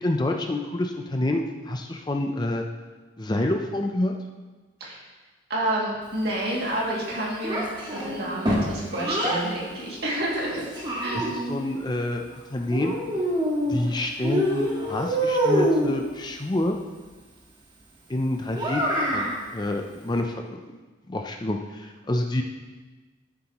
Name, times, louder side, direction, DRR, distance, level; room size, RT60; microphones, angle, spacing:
voice 1, 0.0-2.6 3.2-4.2 11.1-11.2 11.5-12.3 12.5-13.0 13.7-16.8 18.1-20.6 21.1-22.4, left 1 dB, 20° left, 3 dB, 0.5 m, -27 dB
voice 2, 5.5-7.6 7.9-10.7 11.0-11.4, right 1 dB, 55° right, -4 dB, 2.4 m, -29 dB
Child speech kid speaking, 7.4-9.4 10.3-11.6 12.7-13.9 14.2-16.0 18.5-19.4, equal, 25° right, 1.6 m, -25 dB
12.5 x 7.3 x 3.0 m, 1.3 s
head